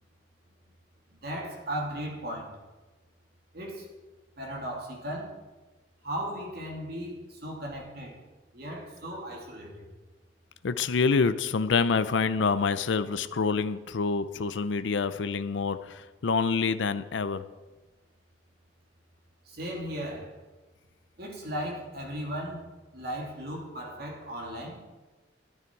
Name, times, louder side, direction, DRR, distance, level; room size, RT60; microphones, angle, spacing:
voice 1, 1.2-2.5 3.5-3.9 4.4-5.3 6.0-8.2 8.5-9.9 19.5-20.3 21.2-24.8, equal, 55° right, -1 dB, 2.8 m, -36 dB
voice 2, 10.6-17.4, left 5 dB, 80° left, 12 dB, 0.5 m, -27 dB
13.0 x 9.5 x 4.6 m, 1.2 s
head